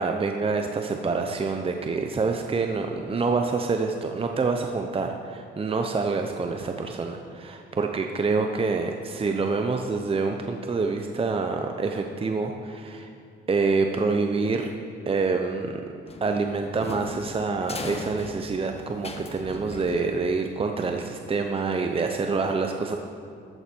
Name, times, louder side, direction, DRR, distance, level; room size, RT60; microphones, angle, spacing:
voice 1, 0.0-13.1 13.5-14.7 15.1-15.8 16.2-23.0, right 4 dB, 30° right, 4 dB, 0.9 m, -26 dB
sound 1, 16.1-20.5, left 2 dB, 30° left, 1.5 m, -38 dB
14.5 x 13.5 x 4.6 m, 2.4 s
cardioid pair, 90°, 20 cm